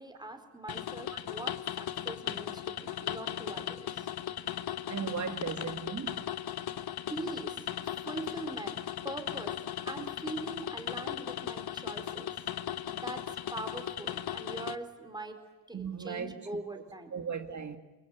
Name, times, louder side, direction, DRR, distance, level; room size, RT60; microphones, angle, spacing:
voice 1, 0.0-4.1 7.1-9.6 9.8-12.5 12.9-15.4 15.7-17.1, right 2 dB, 10° right, 4.4 m, -42 dB
sound 1, 0.7-14.8, left 11 dB, 60° left, 1.2 m, -37 dB
voice 2, 4.9-6.3 15.7-16.8 17.1-17.8, right 6 dB, 40° right, 2.1 m, -37 dB
29.5 x 22.0 x 9.2 m
cardioid pair, 100°, 42 cm